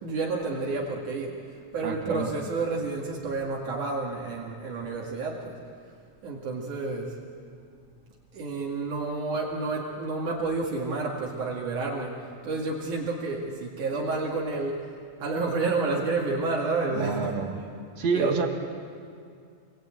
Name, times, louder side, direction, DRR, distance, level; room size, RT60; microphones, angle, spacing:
voice 1, 0.0-1.4 1.7-5.6 6.2-7.2 8.3-14.9 15.2-17.4 18.1-18.4, right 3 dB, 75° right, -3 dB, 3.7 m, -30 dB
voice 2, 1.8-2.3 16.9-17.5 18.0-18.5, right 5 dB, 60° right, 3 dB, 3.0 m, -27 dB
26.0 x 22.5 x 8.9 m, 2.3 s
omnidirectional pair, 3.5 m